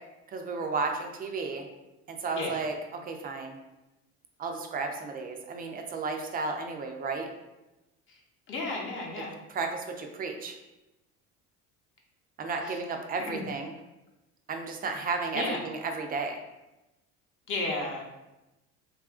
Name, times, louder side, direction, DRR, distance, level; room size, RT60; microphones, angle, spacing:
voice 1, 0.3-1.6 2.1-3.6 4.4-7.3 9.5-10.5 12.4-13.7 14.5-16.4, right 4 dB, 30° right, 4 dB, 0.4 m, -33 dB
voice 2, 8.5-9.3 12.6-12.8 13.3-13.4 15.3-15.6 17.5-18.0, left 2 dB, 40° left, -2 dB, 0.7 m, -33 dB
2.6 x 2.4 x 2.4 m, 0.98 s
cardioid pair, 105°, 30 cm